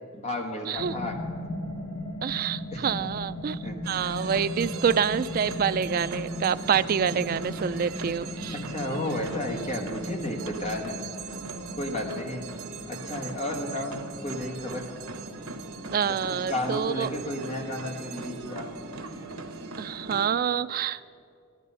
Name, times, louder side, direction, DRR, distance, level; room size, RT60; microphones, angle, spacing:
voice 1, 0.1-1.2 2.7-3.1 3.6-3.8 8.5-11.0 11.8-12.5 12.9-14.9 16.2-18.8, left 1 dB, 30° left, 2 dB, 1.5 m, -33 dB
sound 1, 0.8-20.2, left 1 dB, 55° left, 1.2 m, -39 dB
voice 2, 2.2-3.6 3.9-8.6 15.9-17.1 19.8-21.0, right 7 dB, 40° right, 13 dB, 0.3 m, -27 dB
sound 2, 3.8-20.3, right 4 dB, 85° right, 1.0 m, -40 dB
13.5 x 12.0 x 5.5 m, 2.4 s
head